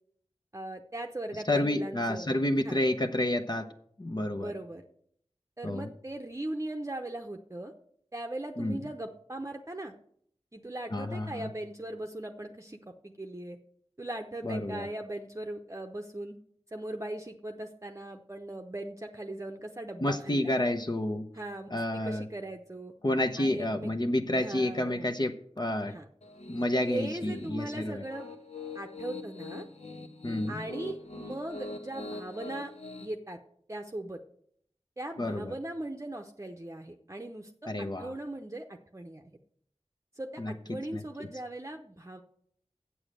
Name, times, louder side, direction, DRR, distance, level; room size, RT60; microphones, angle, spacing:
voice 1, 0.5-2.3 2.6-2.8 4.4-4.8 5.6-7.7 8.1-9.9 10.5-13.6 14.0-16.3 16.7-20.6 21.3-22.9 23.4-23.9 24.4-25.1 25.9-26.1 26.9-28.3 28.7-29.7 30.5-32.7 33.0-33.4 33.7-34.2 35.0-39.4 40.1-42.2, right 1 dB, 25° right, 4 dB, 0.8 m, -39 dB
voice 2, 1.5-3.7 4.0-4.5 5.6-5.9 8.6-8.8 10.9-11.5 14.4-14.9 20.0-21.3 21.7-22.3 23.0-26.0 26.5-28.0 30.2-30.6 35.2-35.5 37.7-38.1 40.4-41.3, left 1 dB, 40° left, 5 dB, 0.8 m, -30 dB
Piano, 26.2-33.1, left 3 dB, 75° left, 1.3 m, -43 dB
8.5 x 7.1 x 7.6 m, 0.65 s
wide cardioid pair, 55°, 11 cm